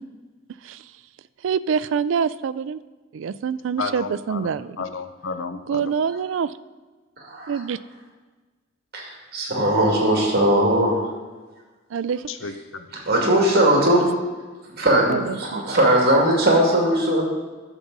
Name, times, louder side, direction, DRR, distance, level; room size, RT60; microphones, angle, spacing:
voice 1, 1.4-2.8 3.1-4.8 5.7-6.5 7.5-7.8 11.9-12.2 15.1-15.6, right 6 dB, 65° right, 16 dB, 0.3 m, -25 dB
voice 2, 3.8-5.9 12.3-12.9, left 4 dB, 70° left, 10 dB, 0.6 m, -32 dB
voice 3, 8.9-11.0 13.1-14.1 14.7-17.2, right 1 dB, 50° right, -1 dB, 2.3 m, -19 dB
11.5 x 7.2 x 4.0 m, 1.3 s
head